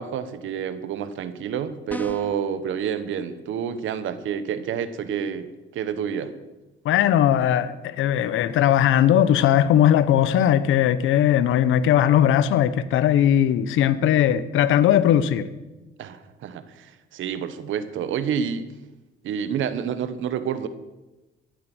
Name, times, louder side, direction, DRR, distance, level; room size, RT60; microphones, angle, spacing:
voice 1, 0.0-6.3 16.0-18.7 19.2-20.7, right 8 dB, 80° right, 1.3 m, -29 dB
sound 1, 1.9-2.5, left 2 dB, 10° left, 1.1 m, -35 dB
voice 2, 6.8-15.5, left 10 dB, 85° left, 0.9 m, -19 dB
14.5 x 11.0 x 6.3 m
cardioid pair, 90°, 20 cm